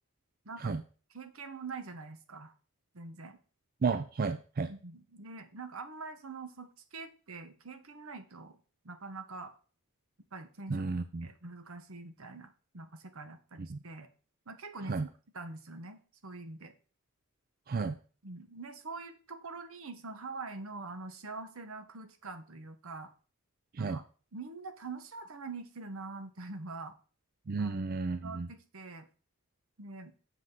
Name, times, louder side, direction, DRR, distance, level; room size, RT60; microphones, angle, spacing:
voice 1, 0.4-0.7 1.1-2.5 2.9-3.4 4.7-8.6 8.8-9.6 10.3-10.8 11.2-14.1 14.5-15.1 15.3-16.7 18.2-23.1 23.8-24.0 24.3-27.0 27.6-29.1 29.8-30.1, right 3 dB, 75° right, 8 dB, 1.1 m, -44 dB
voice 2, 3.8-4.7 10.7-11.3 13.7-13.8 14.9-15.1 17.7-18.0 23.7-24.0 27.5-28.5, right 4 dB, 45° right, 9 dB, 0.4 m, -32 dB
7.7 x 6.1 x 3.9 m, 0.39 s
head